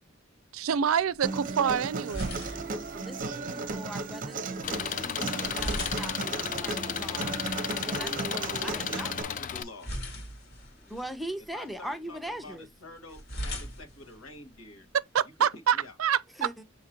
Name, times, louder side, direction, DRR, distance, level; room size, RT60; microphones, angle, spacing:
voice 1, 0.5-2.5 15.1-16.5, right 8 dB, 80° right, 0.4 m, -27 dB
sound 1, 1.0-15.0, equal, 55° left, 1.7 m, -43 dB
Human voice, 1.2-9.2, right 3 dB, 40° right, 0.6 m, -35 dB
voice 2, 3.5-9.3 10.8-12.7 16.4-16.5, right 1 dB, ahead, 0.6 m, -41 dB
Engine, 4.6-9.6, left 8 dB, 40° left, 0.3 m, -34 dB
voice 3, 8.2-10.0 11.5-14.9 15.7-15.9, left 2 dB, 80° left, 1.5 m, -46 dB
6.4 x 2.9 x 2.8 m
head